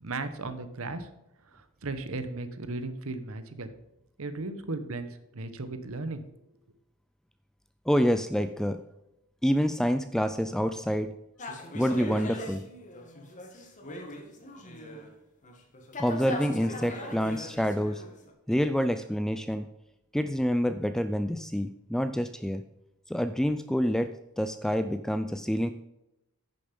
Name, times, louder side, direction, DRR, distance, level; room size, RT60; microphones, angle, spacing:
voice 1, 0.0-1.1 1.5-3.7 4.2-5.1 5.3-6.3, right 3 dB, 65° right, 11 dB, 1.0 m, -36 dB
voice 2, 7.9-8.8 9.4-11.1 11.7-12.6 16.0-18.0 18.5-19.7 20.1-22.6 23.1-24.1 24.4-25.7, equal, ahead, 10 dB, 0.3 m, -27 dB
sound 1, 11.4-15.1 15.4-18.3, left 1 dB, 35° left, 1.6 m, -40 dB
10.0 x 6.9 x 5.3 m, 0.90 s
head